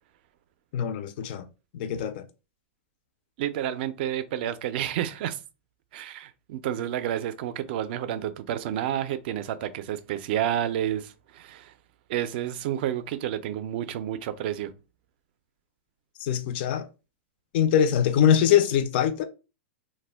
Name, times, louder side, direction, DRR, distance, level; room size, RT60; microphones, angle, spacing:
voice 1, 0.7-1.4 1.7-2.2 16.2-16.9 17.5-19.2, left 9 dB, 50° left, 0.3 m, -23 dB
voice 2, 3.4-5.4 5.9-11.7 12.1-14.7, right 11 dB, 50° right, 0.3 m, -30 dB
2.1 x 2.1 x 3.3 m
hypercardioid pair, 145°, 7 cm